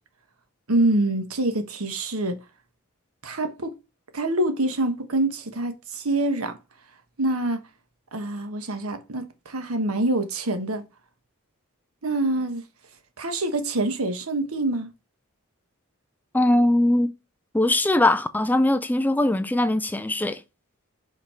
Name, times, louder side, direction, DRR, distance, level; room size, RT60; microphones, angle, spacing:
voice 1, 0.7-2.4 3.2-3.7 4.1-6.6 7.2-7.6 8.1-10.8 12.0-12.6 13.2-14.9, right 2 dB, 85° right, 1.3 m, -25 dB
voice 2, 16.3-17.1 17.5-20.4, left 1 dB, 10° left, 0.3 m, -21 dB
5.3 x 5.1 x 4.4 m
head